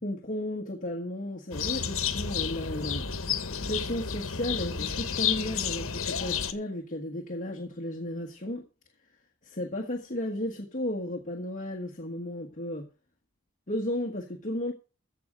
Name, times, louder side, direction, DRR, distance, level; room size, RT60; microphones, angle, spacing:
voice 1, 0.0-3.1 3.6-8.6 9.4-12.9 13.7-14.7, left 1 dB, 40° left, 1.5 m, -34 dB
sound 1, 1.5-6.5, left 7 dB, 75° left, 1.3 m, -31 dB
15.0 x 5.1 x 7.9 m
head